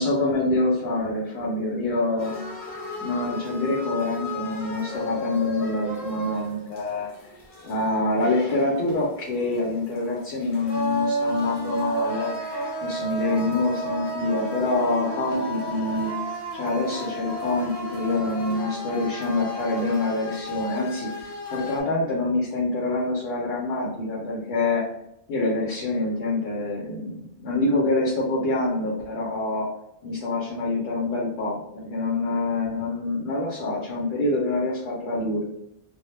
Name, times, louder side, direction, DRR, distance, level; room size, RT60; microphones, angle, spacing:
voice 1, 0.0-2.3 3.0-7.1 7.6-12.3 12.8-16.1 16.5-21.1 21.5-24.8 25.3-29.7 30.0-35.4, left 2 dB, 90° left, -5 dB, 0.9 m, -26 dB
sound 1, 2.2-21.8, equal, 35° left, 0.6 m, -33 dB
2.2 x 2.1 x 3.0 m, 0.76 s
omnidirectional pair, 1.1 m